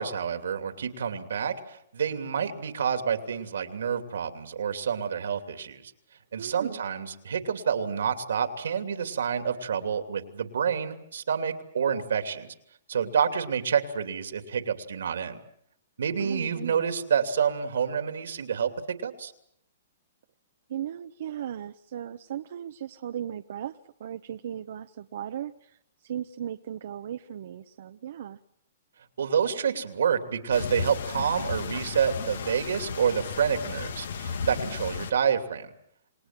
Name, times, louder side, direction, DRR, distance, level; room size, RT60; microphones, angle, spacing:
voice 1, 0.0-5.9 6.3-12.5 12.9-15.4 16.0-19.3 29.2-35.7, right 7 dB, 85° right, 7 dB, 2.8 m, -28 dB
voice 2, 6.4-6.8 16.2-16.8 20.7-28.4, right 10 dB, 65° right, 8 dB, 0.9 m, -37 dB
sound 1, 30.5-35.1, left 5 dB, 80° left, 2.2 m, -34 dB
28.5 x 19.5 x 7.5 m, 0.72 s
hypercardioid pair, 145°, 0 cm